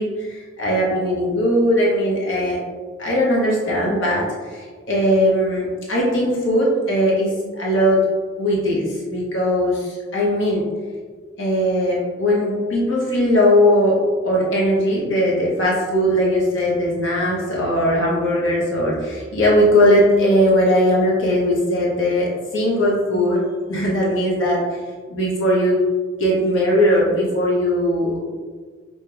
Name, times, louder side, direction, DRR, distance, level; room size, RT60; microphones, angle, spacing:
voice 1, 0.0-2.6 3.0-8.0 8.4-10.7 11.4-23.4 23.7-24.6 25.1-25.8 26.2-28.2, equal, 65° left, -4 dB, 0.9 m, -19 dB
4.9 x 2.8 x 2.3 m, 1.5 s
head